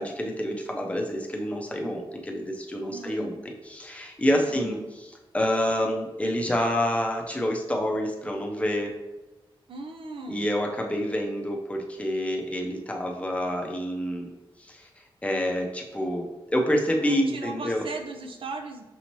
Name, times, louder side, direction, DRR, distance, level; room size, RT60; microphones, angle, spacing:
voice 1, 0.0-3.3 3.7-4.8 5.3-8.9 10.3-14.3 14.6-14.9 15.2-17.8, equal, 15° left, 1 dB, 0.5 m, -27 dB
voice 2, 2.9-3.4 4.4-4.8 9.7-10.5 17.0-18.8, right 3 dB, 75° right, 4 dB, 0.5 m, -37 dB
6.1 x 2.9 x 3.0 m, 1.1 s
wide cardioid pair, 115°, 9 cm